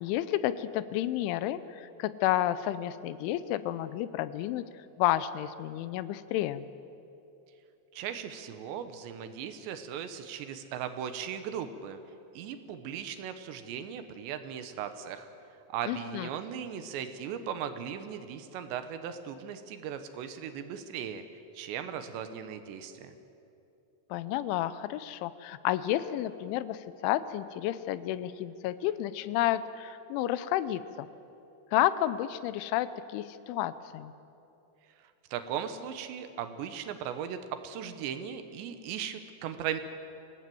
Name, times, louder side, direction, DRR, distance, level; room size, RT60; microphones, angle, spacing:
voice 1, 0.0-4.7 5.0-6.7 15.9-16.3 24.1-31.1 31.7-34.1, left 13 dB, 85° left, 14 dB, 3.1 m, -31 dB
voice 2, 7.9-12.0 12.3-15.3 15.7-21.2 21.5-23.1 35.0-39.8, right 8 dB, 75° right, 9 dB, 3.1 m, -38 dB
26.0 x 18.0 x 7.7 m, 2.8 s
omnidirectional pair, 5.4 m